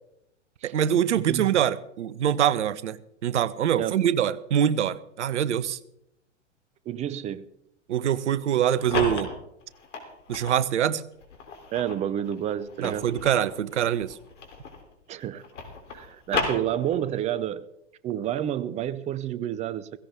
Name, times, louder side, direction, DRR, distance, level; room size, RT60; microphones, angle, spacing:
voice 1, 0.6-5.8 7.9-9.3 10.3-11.0 12.8-14.2, right 10 dB, 70° right, 18 dB, 0.9 m, -24 dB
voice 2, 1.2-1.5 3.8-3.9 6.9-7.5 11.7-13.1 15.1-15.4 15.9-17.7 18.0-20.0, right 11 dB, 20° right, 18 dB, 0.5 m, -29 dB
sound 1, 8.5-10.6 11.2-14.9 15.2-17.2, left 4 dB, 75° left, 3.5 m, -34 dB
16.0 x 16.0 x 3.6 m, 0.79 s
hypercardioid pair, 105°, 37 cm